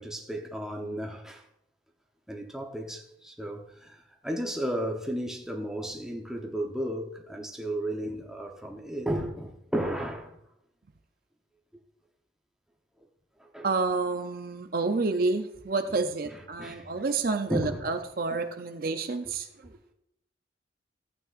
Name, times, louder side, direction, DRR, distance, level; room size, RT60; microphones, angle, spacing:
voice 1, 0.0-1.4 2.3-10.4 13.4-13.7 16.6-17.0 17.5-17.9 18.3-18.4, right 1 dB, 5° right, 0.8 m, -34 dB
voice 2, 13.6-19.7, right 3 dB, 50° right, 0.5 m, -29 dB
14.5 x 8.7 x 2.5 m
head